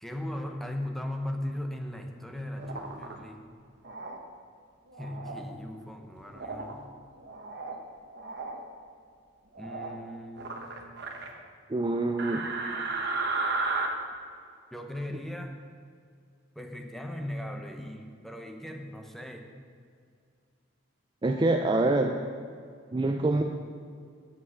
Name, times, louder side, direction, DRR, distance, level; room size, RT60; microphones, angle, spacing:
voice 1, 0.0-3.4 5.0-6.9 9.6-10.7 14.7-15.5 16.5-19.5, left 1 dB, ahead, 3 dB, 0.7 m, -38 dB
sound 1, 2.6-3.1 3.8-4.2 4.9-5.4 6.3-6.7 7.2-7.8 8.1-8.6 9.5-10.0 10.4-11.3 12.2-13.9, right 3 dB, 55° right, 1.0 m, -34 dB
voice 2, 11.7-12.5 21.2-22.2 22.9-23.4, right 2 dB, 20° right, 4 dB, 0.4 m, -25 dB
8.4 x 7.4 x 6.4 m, 2.2 s
head